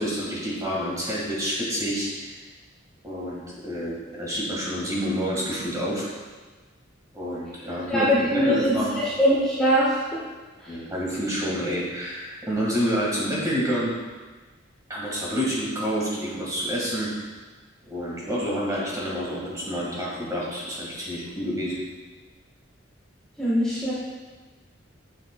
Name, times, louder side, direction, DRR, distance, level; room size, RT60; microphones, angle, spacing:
voice 1, 0.0-2.3 3.0-6.1 7.1-8.9 10.7-13.9 14.9-17.1 17.9-21.8, equal, 15° right, -5 dB, 1.6 m, -28 dB
voice 2, 7.9-9.8 23.4-23.9, equal, 5° left, -9 dB, 1.2 m, -22 dB
7.2 x 7.0 x 2.2 m, 1.3 s
head